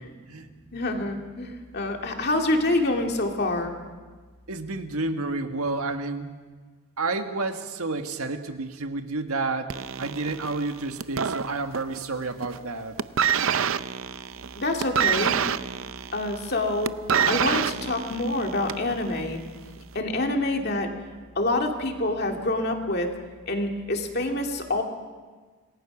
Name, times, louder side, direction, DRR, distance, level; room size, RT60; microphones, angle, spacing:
voice 1, 0.7-3.7 14.6-15.4 16.1-16.9 17.3-19.4 19.9-20.9 21.4-23.1 23.5-24.8, left 2 dB, 45° left, 3 dB, 2.3 m, -26 dB
voice 2, 4.5-6.3 7.0-13.0, right 3 dB, 80° right, 6 dB, 1.6 m, -30 dB
sound 1, 9.7-12.0 12.3-12.7 13.0-18.9 19.8-19.9, right 7 dB, 65° right, 0.6 m, -26 dB
27.0 x 19.5 x 6.0 m, 1.4 s
head